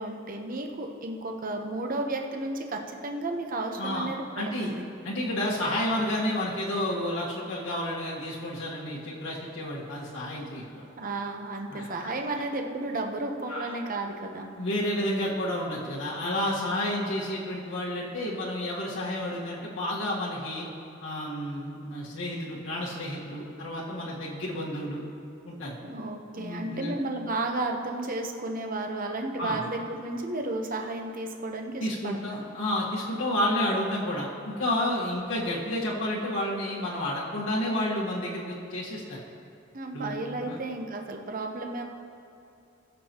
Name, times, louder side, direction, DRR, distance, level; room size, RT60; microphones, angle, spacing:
voice 1, 0.0-4.8 11.0-14.5 25.8-32.5 39.7-41.8, right 2 dB, 45° right, 3 dB, 0.9 m, -33 dB
voice 2, 3.8-4.1 4.4-4.7 5.0-10.8 11.7-12.4 13.5-13.8 14.6-20.7 21.0-25.0 25.4-25.8 26.4-27.0 29.4-29.6 31.8-39.2 39.9-40.6, left 1 dB, 85° left, -6 dB, 1.5 m, -31 dB
20.0 x 6.7 x 3.0 m, 2.6 s
head